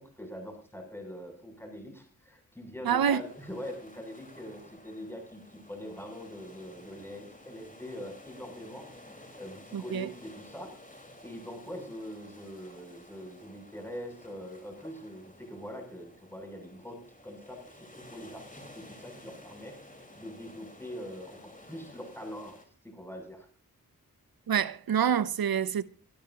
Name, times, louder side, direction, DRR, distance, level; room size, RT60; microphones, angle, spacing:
voice 1, 0.0-10.7 11.2-19.8 20.1-22.6 22.8-23.5, equal, 5° left, 7.8 m, -43 dB
voice 2, 2.8-3.2 9.7-10.1 24.5-25.8, right 8 dB, 85° right, 0.7 m, -27 dB
sound 1, 3.1-22.7, left 1 dB, 20° left, 4.4 m, -53 dB
24.0 x 12.0 x 2.9 m
cardioid pair, 40°, 35 cm